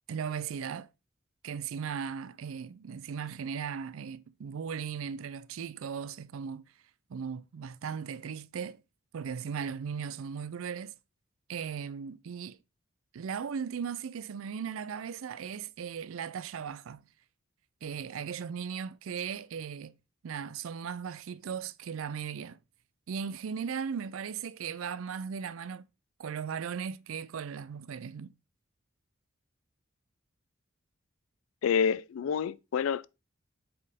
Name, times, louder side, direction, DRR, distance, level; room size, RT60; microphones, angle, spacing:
voice 1, 0.1-0.9 1.4-6.7 7.1-8.8 9.1-10.9 11.5-12.6 13.1-17.0 17.8-19.9 20.2-22.6 23.1-25.9 26.2-28.3, right 7 dB, 75° right, 0.4 m, -37 dB
voice 2, 31.6-33.1, left 7 dB, 70° left, 0.3 m, -28 dB
7.6 x 4.2 x 3.5 m
head